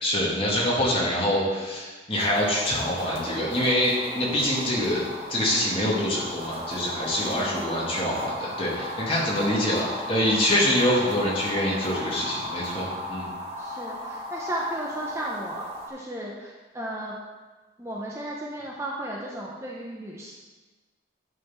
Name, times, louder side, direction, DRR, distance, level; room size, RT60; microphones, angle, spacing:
voice 1, 0.0-13.3, left 1 dB, 30° left, -5 dB, 2.2 m, -25 dB
sound 1, 2.1-15.9, equal, 35° right, 1.5 m, -36 dB
voice 2, 7.2-7.6 9.4-9.7 13.6-17.2 17.8-20.3, right 1 dB, 15° right, -4 dB, 0.9 m, -35 dB
11.0 x 4.3 x 5.6 m, 1.3 s
head